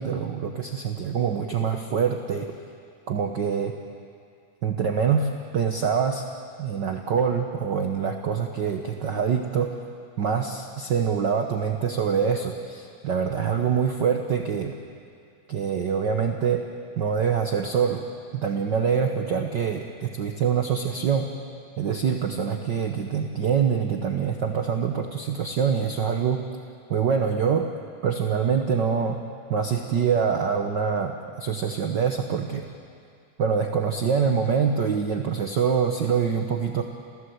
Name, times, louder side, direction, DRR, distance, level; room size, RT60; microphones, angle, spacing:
voice 1, 0.0-2.5 3.1-3.7 4.6-6.3 6.6-9.8 10.2-14.7 15.5-16.6 17.0-18.0 18.3-21.3 21.8-26.4 26.9-27.7 28.0-29.2 29.5-32.7 33.4-36.8, right 6 dB, 70° right, 4 dB, 1.0 m, -25 dB
29.0 x 16.0 x 8.1 m, 2.4 s
omnidirectional pair, 3.5 m